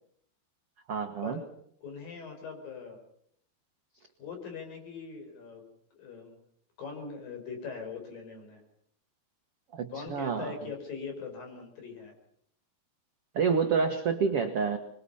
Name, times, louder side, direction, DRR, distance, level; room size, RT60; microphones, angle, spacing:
voice 1, 0.9-1.4 9.7-10.5 13.3-14.8, right 5 dB, 70° right, 5 dB, 1.4 m, -28 dB
voice 2, 1.8-3.0 4.2-5.6 5.9-6.4 6.8-8.6 9.9-12.1, left 5 dB, 55° left, 4 dB, 6.6 m, -41 dB
26.5 x 22.0 x 5.6 m, 0.66 s
omnidirectional pair, 4.9 m